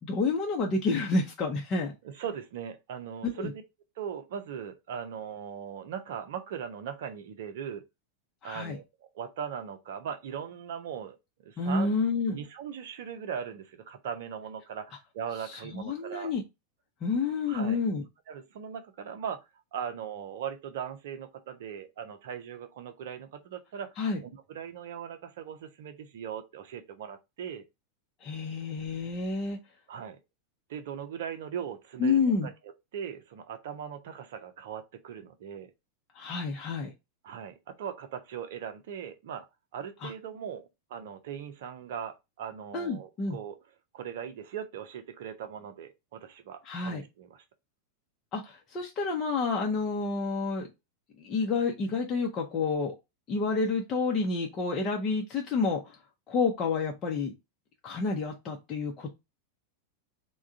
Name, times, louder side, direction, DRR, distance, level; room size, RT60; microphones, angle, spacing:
voice 1, 0.0-1.9 3.3-3.5 8.4-8.8 11.6-12.4 15.5-16.4 17.0-18.0 24.0-24.2 28.2-29.6 32.0-32.5 36.1-36.9 40.0-40.1 42.7-43.4 46.6-47.0 48.3-50.7 51.2-52.9 53.3-56.0 56.3-57.3 57.8-59.1, left 4 dB, 30° left, 0.8 m, -29 dB
voice 2, 2.0-3.6 4.0-7.8 8.4-11.2 11.4-11.9 12.3-16.3 17.5-17.8 18.3-19.4 19.7-23.9 24.2-27.6 29.9-30.2 30.7-32.5 32.9-35.7 37.2-39.5 39.7-43.6 43.9-47.4, right 8 dB, 55° right, 0.6 m, -39 dB
3.6 x 2.3 x 4.5 m
figure-of-eight pair, 90°, 0 cm